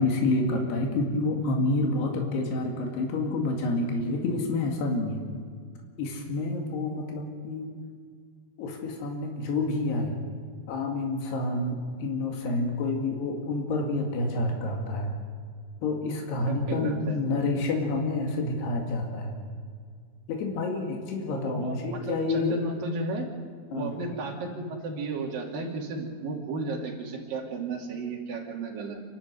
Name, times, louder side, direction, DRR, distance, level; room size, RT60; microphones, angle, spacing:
voice 1, 0.0-5.2 6.0-7.7 8.6-10.2 10.7-15.2 15.8-19.4 20.3-22.6 23.7-23.9, left 2 dB, 80° left, 1 dB, 4.3 m, -28 dB
voice 2, 16.7-17.2 21.3-23.2 23.7-29.0, right 3 dB, 60° right, -1 dB, 4.2 m, -34 dB
28.0 x 12.5 x 8.1 m, 2.1 s
omnidirectional pair, 4.8 m